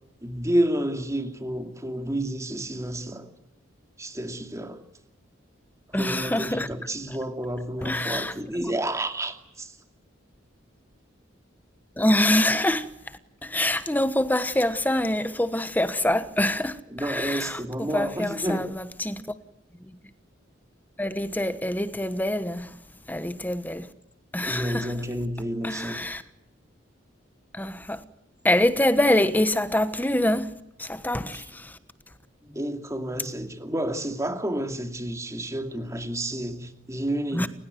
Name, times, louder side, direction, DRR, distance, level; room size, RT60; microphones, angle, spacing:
voice 1, 0.2-3.3 4.0-4.8 5.9-9.8 16.9-18.7 24.4-26.1 31.3-31.4 32.4-37.5, right 1 dB, 15° right, 2.4 m, -30 dB
voice 2, 5.9-6.7 7.8-8.8 12.0-18.7 19.0-19.2 19.8-20.0 21.0-22.7 23.1-23.9 24.3-24.9 25.6-26.2 27.5-28.0 28.4-30.5 30.8-31.8 37.3-37.5, left 1 dB, 10° left, 1.1 m, -25 dB
30.0 x 16.5 x 9.4 m
head